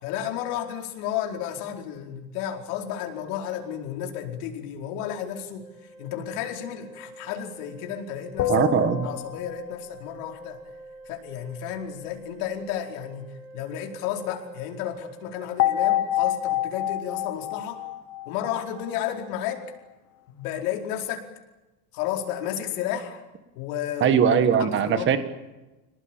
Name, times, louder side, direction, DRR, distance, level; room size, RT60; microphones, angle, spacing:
voice 1, 0.0-5.7 6.0-8.5 9.0-10.6 11.0-17.8 18.3-19.6 20.3-21.2 21.9-23.2 23.6-25.2, left 10 dB, 65° left, 2 dB, 4.8 m, -32 dB
Organ, 5.6-16.6, right 2 dB, ahead, 4.1 m, -47 dB
sound 1, 8.4-9.9 15.6-18.9, left 13 dB, 30° left, 1.2 m, -27 dB
voice 2, 8.5-9.1 24.0-25.2, right 7 dB, 25° right, 9 dB, 1.7 m, -20 dB
28.0 x 19.0 x 9.1 m, 1.1 s
cardioid pair, 175°, 48 cm